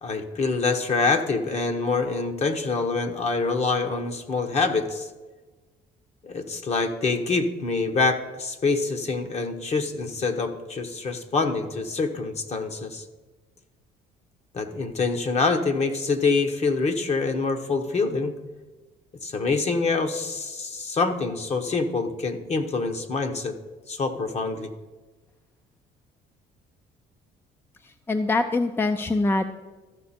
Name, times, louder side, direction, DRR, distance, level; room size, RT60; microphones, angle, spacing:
voice 1, 0.0-5.1 6.2-13.0 14.5-18.3 19.2-23.5 23.9-24.7, left 4 dB, 40° left, 6 dB, 1.1 m, -25 dB
voice 2, 28.1-29.4, left 2 dB, 15° left, 9 dB, 0.4 m, -23 dB
14.0 x 6.0 x 4.3 m, 1.3 s
cardioid pair, 110°, 17 cm